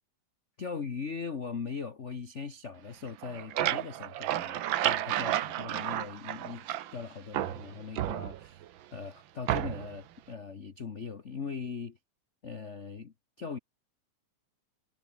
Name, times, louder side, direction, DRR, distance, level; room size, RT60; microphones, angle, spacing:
voice 1, 0.6-6.7 6.9-8.6 8.9-12.0 12.4-13.6, left 5 dB, 75° left, 0.6 m, -40 dB
sound 1, 3.1-7.0 7.3-8.7 9.5-10.0, right 12 dB, 80° right, 1.1 m, -32 dB
omnidirectional pair, 3.4 m